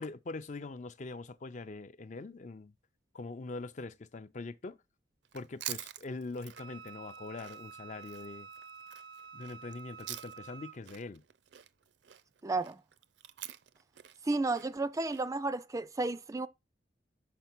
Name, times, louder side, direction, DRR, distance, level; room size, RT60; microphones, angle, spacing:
voice 1, 0.0-2.7 3.1-4.8 5.3-8.5 9.3-11.2, left 3 dB, 40° left, 0.5 m, -43 dB
Chewing mastication, 5.2-10.6 10.9-15.3, right 13 dB, 65° right, 0.5 m, -47 dB
Wind instrument woodwind instrument, 6.5-10.8, right 6 dB, 90° right, 0.9 m, -49 dB
voice 2, 12.4-12.8 14.2-16.5, right 2 dB, 20° right, 0.4 m, -32 dB
6.8 x 5.2 x 6.0 m
head